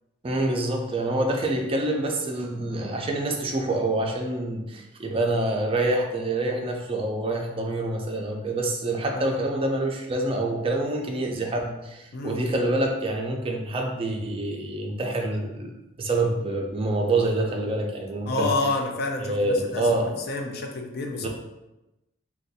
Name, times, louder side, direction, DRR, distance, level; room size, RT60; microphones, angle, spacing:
voice 1, 0.2-18.5 19.2-20.1 21.2-21.3, right 2 dB, 30° right, 1 dB, 0.4 m, -26 dB
voice 2, 12.1-12.5 18.3-19.9 20.3-21.3, left 3 dB, 55° left, 3 dB, 0.4 m, -29 dB
2.5 x 2.2 x 4.0 m, 0.96 s
head